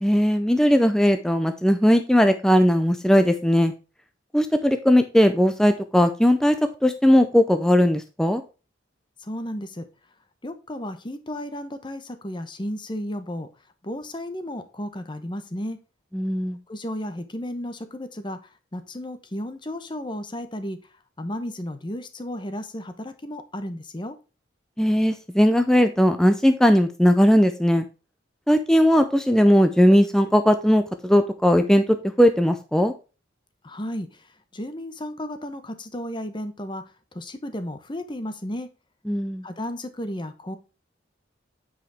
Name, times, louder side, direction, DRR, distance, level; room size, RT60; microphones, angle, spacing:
voice 1, 0.0-3.7 4.3-8.4 16.1-16.6 24.8-27.8 28.5-31.8 32.2-32.9 39.1-39.4, equal, 5° left, 8 dB, 0.5 m, -18 dB
voice 2, 9.2-9.9 10.4-13.5 13.8-15.8 16.7-20.8 21.2-24.2 33.6-36.8 37.1-38.7 39.4-40.6, left 1 dB, 25° left, 9 dB, 0.9 m, -33 dB
8.8 x 5.0 x 3.4 m, 0.32 s
head